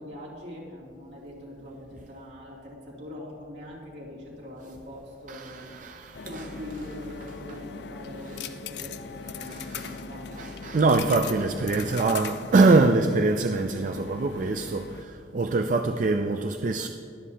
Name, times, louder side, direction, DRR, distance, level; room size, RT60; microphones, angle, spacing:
voice 1, 0.0-5.7 6.0-10.4, left 1 dB, 70° right, 2.7 m, -42 dB
voice 2, 5.3-6.5 8.3-8.4 9.4-10.0 10.4-16.9, right 3 dB, 45° right, 0.4 m, -24 dB
sound 1, 6.1-15.0, left 6 dB, 65° left, 0.4 m, -40 dB
21.5 x 7.6 x 2.8 m
head